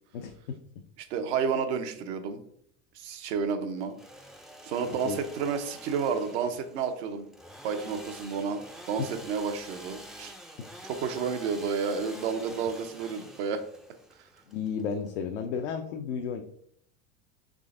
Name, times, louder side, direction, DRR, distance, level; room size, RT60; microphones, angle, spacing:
voice 1, 0.1-0.6 4.9-5.2 10.6-10.7 14.5-16.4, left 6 dB, 90° left, 4 dB, 0.6 m, -33 dB
voice 2, 1.0-2.4 2.9-4.0 4.6-7.3 7.6-8.6 8.9-10.3 10.8-13.6, right 6 dB, 75° right, 7 dB, 0.8 m, -31 dB
Engine / Sawing, 3.8-15.5, equal, ahead, 0.3 m, -47 dB
3.8 x 3.4 x 3.7 m, 0.66 s
supercardioid pair, 110°, 34 cm